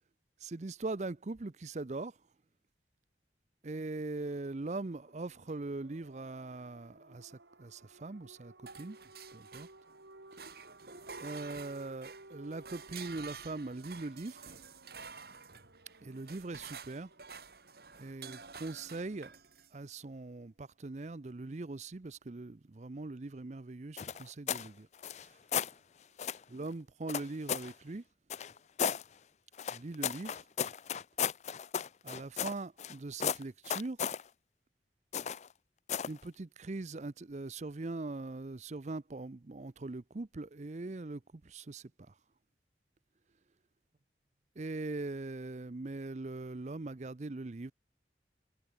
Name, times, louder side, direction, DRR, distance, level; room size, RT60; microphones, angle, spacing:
voice 1, 0.4-2.2 3.6-9.0 9.3-9.7 11.2-14.4 16.0-17.1 18.0-19.4 19.7-24.9 25.2-25.3 26.5-28.0 29.7-30.4 32.0-34.0 36.0-42.1 44.6-47.7, right 2 dB, 40° right, 0.6 m, -41 dB
sound 1, 4.0-18.7, right 2 dB, 90° right, 3.6 m, -58 dB
sound 2, 8.7-10.0 10.3-19.7, right 5 dB, 60° right, 3.2 m, -50 dB
sound 3, 24.0-24.7 25.0-25.7 26.2-26.4 27.1-27.7 28.3-29.0 29.6-32.9 33.2-34.2 35.1-35.5 35.9-36.2, left 8 dB, 40° left, 0.4 m, -35 dB
head